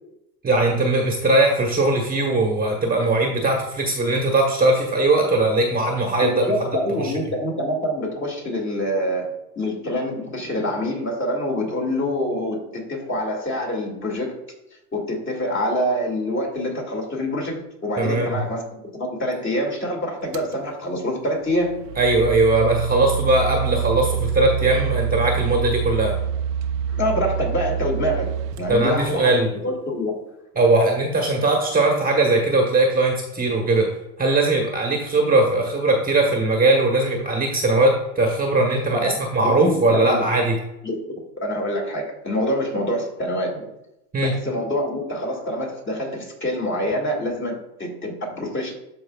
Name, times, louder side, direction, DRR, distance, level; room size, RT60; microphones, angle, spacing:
voice 1, 0.4-6.7 7.0-7.1 18.0-18.4 22.0-26.1 28.7-29.5 30.6-40.6 44.1-44.3, right 2 dB, 20° right, 1 dB, 1.3 m, -20 dB
voice 2, 6.2-14.4 14.9-18.6 19.0-21.8 26.9-28.3 28.6-30.1 38.9-39.2 39.4-40.3 40.8-43.7 44.2-48.7, equal, 25° left, 0 dB, 2.3 m, -26 dB
sound 1, 20.3-20.5 21.4-29.5, right 8 dB, 75° right, 0.8 m, -26 dB
13.5 x 4.6 x 2.4 m, 0.89 s
supercardioid pair, 115°, 47 cm